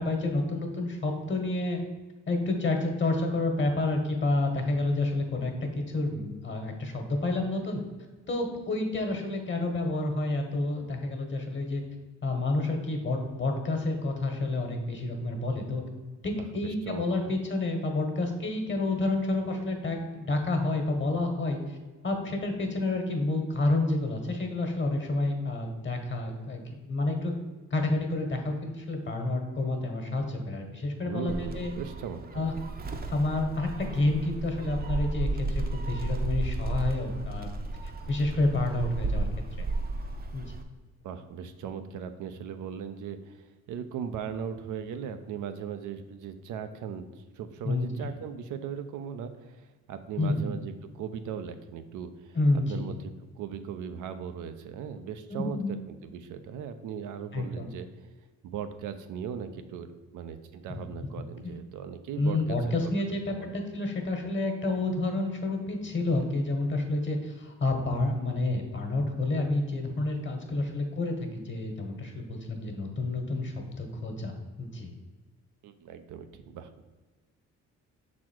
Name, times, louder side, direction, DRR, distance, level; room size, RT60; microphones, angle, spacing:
voice 1, 0.0-1.8 2.3-7.8 8.3-11.8 12.2-15.8 16.2-21.8 22.0-27.3 27.7-31.7 32.3-32.5 33.1-37.5 38.1-39.3 39.6-39.7 40.3-40.6 47.6-47.9 50.2-50.5 52.3-52.9 55.3-55.7 57.3-57.7 60.7-60.8 62.2-74.9, left 2 dB, 40° left, 3 dB, 1.4 m, -29 dB
voice 2, 16.5-17.3 31.0-32.4 41.0-52.4 52.7-57.9 58.4-62.7 63.3-63.5 75.6-76.8, right 7 dB, 80° right, 8 dB, 0.6 m, -38 dB
Gull seagull, 31.3-40.6, right 2 dB, 30° right, 0.7 m, -33 dB
6.2 x 4.2 x 4.5 m, 1.3 s
cardioid pair, 90°, 30 cm